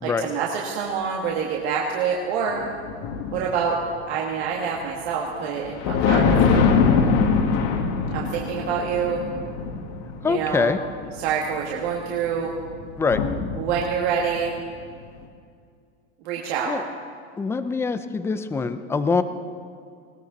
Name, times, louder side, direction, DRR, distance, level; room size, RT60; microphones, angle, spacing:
voice 1, 0.0-2.6 3.3-3.8 4.1-6.6 8.1-9.2 10.2-10.7 11.1-12.5 13.6-14.6 16.2-16.7, right 6 dB, 60° right, -2 dB, 2.1 m, -26 dB
sound 1, 2.5-3.8 5.4-14.6, left 5 dB, 50° left, 2.0 m, -23 dB
voice 2, 10.2-10.8 13.0-13.2 16.7-16.8 17.4-19.2, left 4 dB, 5° left, 11 dB, 0.5 m, -24 dB
20.0 x 17.5 x 4.0 m, 2.2 s
supercardioid pair, 145°, 35 cm